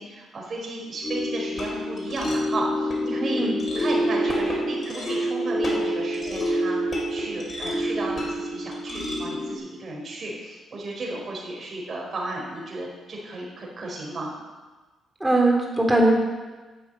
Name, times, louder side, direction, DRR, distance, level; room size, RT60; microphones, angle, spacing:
voice 1, 0.0-3.4 3.7-14.3, right 2 dB, 45° right, -2 dB, 4.9 m, -34 dB
sound 1, 1.0-9.5, equal, 40° left, 4.2 m, -27 dB
voice 2, 15.2-16.1, right 2 dB, 10° right, 0 dB, 3.7 m, -20 dB
11.5 x 8.2 x 8.1 m, 1.3 s
cardioid pair, 90°, 0 cm